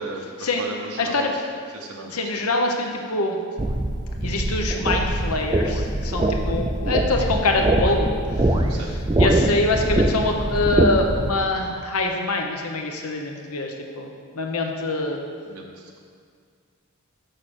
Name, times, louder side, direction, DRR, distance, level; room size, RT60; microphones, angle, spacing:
voice 1, 0.0-1.3 1.7-2.2 8.7-8.9 15.5-16.0, right 3 dB, 90° right, -1 dB, 0.8 m, -35 dB
voice 2, 1.0-1.4 2.1-3.4 4.2-8.1 8.4-15.2, left 2 dB, 85° left, 3 dB, 1.0 m, -25 dB
sound 1, 3.6-11.3, right 1 dB, 20° right, 0.4 m, -23 dB
6.6 x 6.1 x 6.5 m, 2.1 s
head